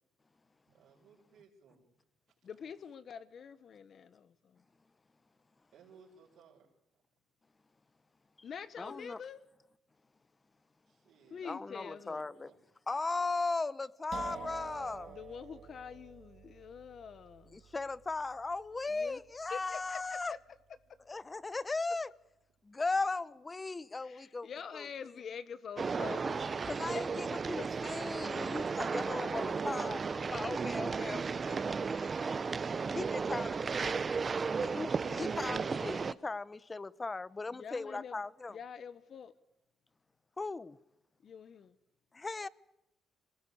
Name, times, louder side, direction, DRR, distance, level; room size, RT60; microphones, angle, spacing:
voice 1, 0.7-2.0 2.3-2.4 5.7-6.7 6.9-7.0 10.8-12.6 13.2-13.3, right 6 dB, 80° right, 6.3 m, -60 dB
voice 2, 2.4-4.6 8.4-9.4 11.3-12.2 15.1-17.6 18.9-19.2 19.5-20.4 24.0-27.0 27.6-27.7 28.9-29.6 37.5-38.2 38.5-39.3 41.2-41.8, left 7 dB, 55° left, 1.2 m, -46 dB
voice 3, 8.8-9.2 11.4-12.5 12.9-15.2 17.5-20.3 21.1-22.1 22.6-25.1 26.6-32.4 32.9-33.7 34.6-38.6 40.4-40.8 42.1-42.5, left 3 dB, 25° left, 0.8 m, -38 dB
sound 1, 14.1-21.7, right 8 dB, 65° right, 2.7 m, -51 dB
sound 2, 25.8-36.1, right 5 dB, 35° right, 0.8 m, -34 dB
23.0 x 20.0 x 8.6 m
cardioid pair, 90°, 0 cm